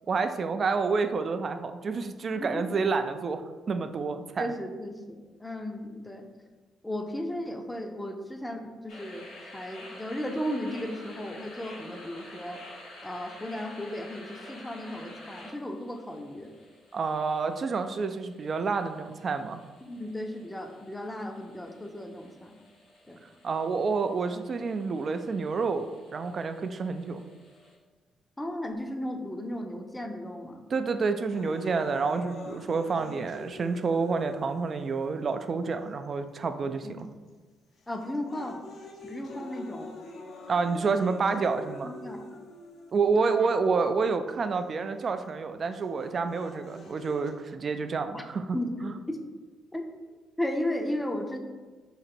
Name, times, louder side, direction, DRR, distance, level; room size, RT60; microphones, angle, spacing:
voice 1, 0.1-4.5 16.9-19.6 23.4-27.2 30.7-37.1 40.5-41.9 42.9-48.6 48.8-48.9, right 4 dB, 45° right, 8 dB, 0.4 m, -29 dB
voice 2, 2.3-2.7 4.4-6.3 6.8-12.6 13.0-16.5 19.8-22.6 23.1-23.2 28.4-30.6 36.8-37.0 37.9-38.6 39.0-39.9 41.8-42.2 43.2-43.3 48.1-48.3 48.5-48.7 49.1-49.2 49.7-49.8 50.4-51.4, left 1 dB, 10° left, 4 dB, 0.6 m, -35 dB
sound 1, 8.9-27.7, left 1 dB, 90° left, 1.5 m, -50 dB
sound 2, 31.3-35.3 36.0-36.1 37.0-37.3 37.8-43.3 44.3-44.4 45.8-47.3, left 2 dB, 65° left, 0.7 m, -46 dB
3.9 x 2.9 x 4.3 m, 1.4 s
cardioid pair, 90°, 0 cm